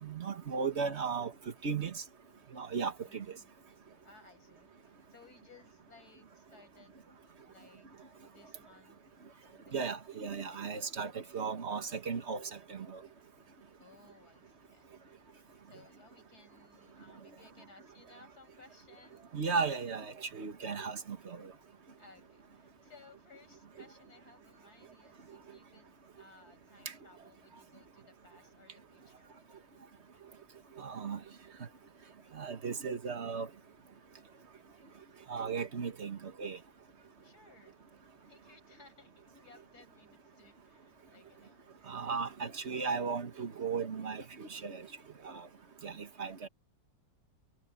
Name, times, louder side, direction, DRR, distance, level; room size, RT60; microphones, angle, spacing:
voice 1, 0.0-1.3 1.6-1.9 2.6-3.2 9.7-12.4 12.7-12.8 19.3-21.0 30.8-31.2 32.4-33.5 35.3-36.6 41.9-44.8 45.2-45.3 45.8-45.9 46.2-46.5, right 5 dB, 40° right, 1.6 m, -35 dB
voice 2, 3.0-3.5 4.0-7.9 8.2-9.0 9.5-9.8 13.8-15.0 15.7-19.4 22.0-29.3 37.2-38.0 38.3-41.7, left 3 dB, 55° left, 7.0 m, -61 dB
omnidirectional pair, 2.0 m